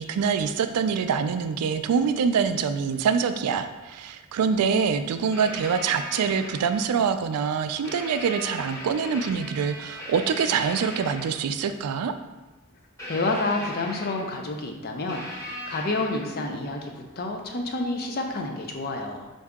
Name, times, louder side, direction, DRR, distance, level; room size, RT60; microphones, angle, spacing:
voice 1, 0.0-12.1, right 6 dB, 90° right, 9 dB, 0.3 m, -25 dB
sound 1, 2.0-2.1 2.9-3.0 4.7-4.8 5.3-7.0 7.8-11.5 13.0-14.5 15.1-16.6 18.3-18.4, left 1 dB, 15° left, 1.0 m, -38 dB
voice 2, 13.0-19.3, left 2 dB, 45° left, 3 dB, 0.5 m, -29 dB
4.7 x 2.7 x 3.5 m, 1.2 s
head